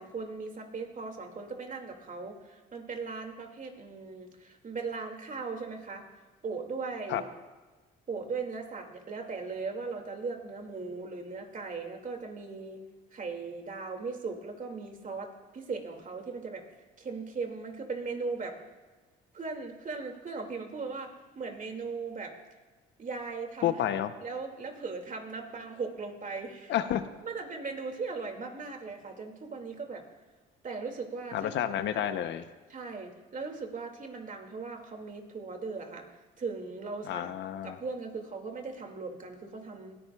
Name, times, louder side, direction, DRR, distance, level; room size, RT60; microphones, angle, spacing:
voice 1, 0.0-6.1 6.4-7.3 8.1-12.8 13.1-16.7 17.0-18.6 19.3-22.3 23.0-23.8 24.2-26.7 27.2-30.1 30.6-31.5 31.9-32.1 32.7-36.1 36.4-37.3 37.6-40.0, right 4 dB, 40° right, 4 dB, 2.3 m, -38 dB
voice 2, 23.6-24.1 26.7-27.0 31.3-32.4 37.1-37.8, left 11 dB, 70° left, 11 dB, 0.8 m, -30 dB
20.0 x 14.0 x 2.3 m, 1.3 s
supercardioid pair, 75°, 20 cm